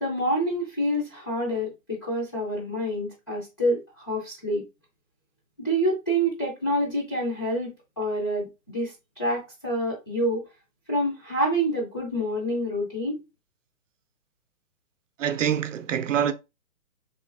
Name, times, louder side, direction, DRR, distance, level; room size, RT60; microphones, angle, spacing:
voice 1, 0.0-4.6 5.6-8.5 8.7-10.5 10.9-13.2, equal, 20° left, 0.4 m, -27 dB
voice 2, 15.2-16.3, right 9 dB, 60° right, 0.6 m, -25 dB
3.1 x 2.3 x 3.3 m
hypercardioid pair, 155°, 42 cm